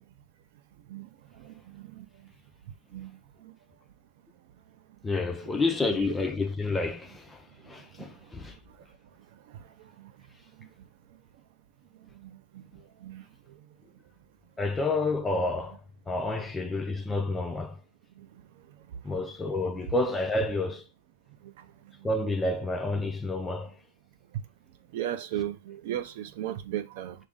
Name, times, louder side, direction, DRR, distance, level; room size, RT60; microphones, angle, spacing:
voice 1, 5.0-8.6 14.6-15.8 16.1-17.8 19.0-20.8 22.0-23.7, left 2 dB, 10° left, 0.4 m, -29 dB
voice 2, 24.9-27.2, right 11 dB, 50° right, 0.4 m, -34 dB
6.1 x 2.5 x 3.5 m
supercardioid pair, 160°, 0 cm